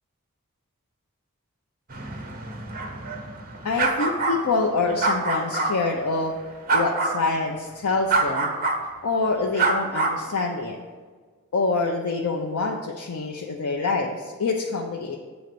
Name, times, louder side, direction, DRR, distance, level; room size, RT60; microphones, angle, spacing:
sound 1, 1.9-5.7 6.7-7.2 8.1-8.8 9.5-10.2, right 3 dB, 40° right, 0.8 m, -25 dB
voice 1, 3.6-6.4 6.7-8.5 9.0-10.8 11.5-15.2, left 3 dB, 85° left, 1 dB, 0.6 m, -26 dB
7.9 x 4.1 x 6.7 m, 1.5 s
head